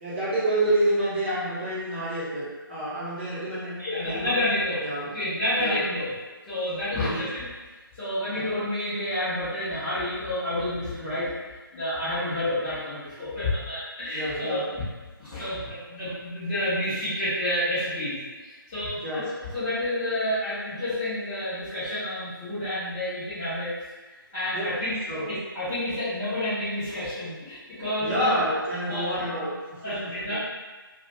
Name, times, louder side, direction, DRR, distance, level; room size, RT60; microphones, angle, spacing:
voice 1, 0.0-4.4 4.8-5.1 5.6-5.8 6.9-7.2 8.3-8.5 11.0-11.2 12.3-12.4 14.1-14.7 18.9-19.3 24.5-25.3 28.0-30.4, right 1 dB, 30° right, -9 dB, 0.8 m, -29 dB
voice 2, 3.8-4.8 5.1-6.1 6.4-7.5 7.9-11.3 11.7-14.8 15.2-19.2 19.5-23.7 24.0-25.0 25.3-28.3 28.9-29.2 29.8-30.3, left 1 dB, 10° left, -16 dB, 0.5 m, -29 dB
2.3 x 2.1 x 2.9 m, 1.3 s
figure-of-eight pair, 150°, 12 cm